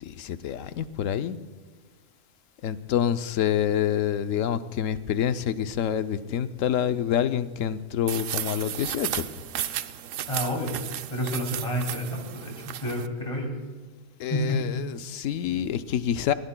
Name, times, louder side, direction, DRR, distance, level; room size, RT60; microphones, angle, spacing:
voice 1, 0.0-1.4 2.6-9.2 14.2-16.3, left 9 dB, 80° left, 12 dB, 1.0 m, -27 dB
sound 1, 8.1-13.1, right 11 dB, 80° right, 1.0 m, -34 dB
voice 2, 10.3-10.7 11.1-13.5 14.3-14.7, left 1 dB, 25° left, 0 dB, 2.6 m, -29 dB
21.0 x 17.0 x 2.2 m, 1.4 s
omnidirectional pair, 1.3 m